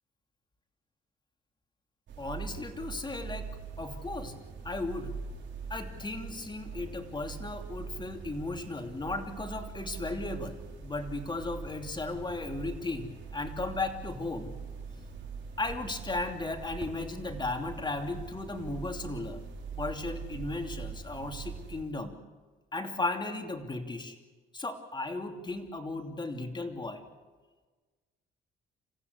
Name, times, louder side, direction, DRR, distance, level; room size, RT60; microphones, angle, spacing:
sound 1, 2.1-21.8, right 6 dB, 65° right, 5.6 m, -42 dB
voice 1, 2.2-3.5 3.8-4.4 4.6-5.2 5.7-14.5 15.6-19.4 19.7-22.1 22.7-24.1 24.5-27.0, left 2 dB, 20° left, 5 dB, 2.9 m, -36 dB
28.0 x 15.0 x 8.2 m, 1.3 s
cardioid pair, 90°, 20 cm